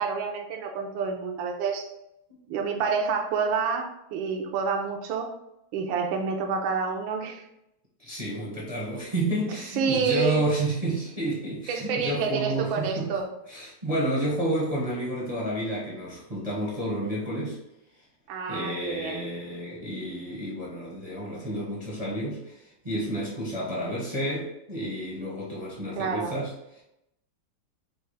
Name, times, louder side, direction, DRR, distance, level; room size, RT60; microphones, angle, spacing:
voice 1, 0.0-1.9 2.5-5.3 5.7-7.4 9.8-10.4 11.7-13.3 18.3-19.2 26.0-26.3, right 5 dB, 75° right, 2 dB, 1.3 m, -28 dB
voice 2, 8.0-13.1 13.5-17.6 18.5-26.8, right 1 dB, 25° right, -6 dB, 0.7 m, -30 dB
4.5 x 2.4 x 4.7 m, 0.82 s
omnidirectional pair, 2.4 m